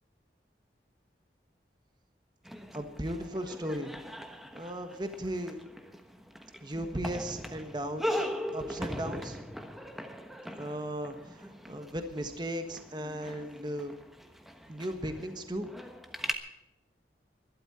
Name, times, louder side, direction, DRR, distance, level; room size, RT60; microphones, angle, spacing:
sound 1, 2.5-16.4, equal, ahead, 1.2 m, -40 dB
voice 1, 2.7-3.9 4.5-5.6 6.6-9.4 10.6-13.9 14.7-15.7, right 1 dB, 25° right, 7 dB, 1.4 m, -36 dB
21.5 x 12.5 x 4.2 m, 0.98 s
head